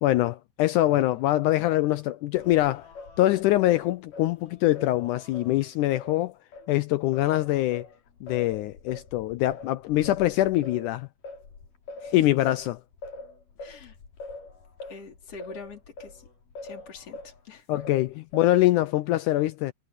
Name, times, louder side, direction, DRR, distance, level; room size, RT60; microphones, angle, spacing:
voice 1, 0.0-2.9 3.2-6.3 6.7-7.9 8.2-11.1 12.1-12.8 17.7-19.7, left 15 dB, 80° left, 1.8 m, -24 dB
Singing, 2.4-6.7 7.1-17.4 17.7-18.8, left 3 dB, 65° left, 4.9 m, -44 dB
voice 2, 13.6-14.0 14.9-16.3 16.6-17.8, left 5 dB, 45° left, 4.8 m, -45 dB
omnidirectional pair, 4.1 m